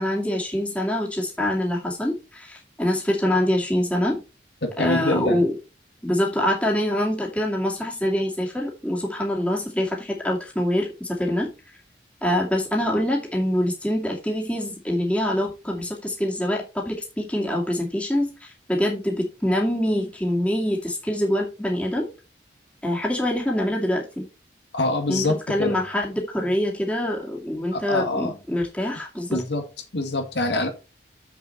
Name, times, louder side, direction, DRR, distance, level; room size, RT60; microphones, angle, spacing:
voice 1, 0.0-4.2 4.8-5.6 6.0-11.5 12.2-22.1 22.8-24.2 25.1-29.4, left 1 dB, 5° left, 2.3 m, -25 dB
voice 2, 4.6-5.4 24.7-25.8 27.7-28.3 29.3-29.6 29.9-30.7, left 2 dB, 65° left, 1.8 m, -25 dB
7.5 x 6.7 x 4.3 m
head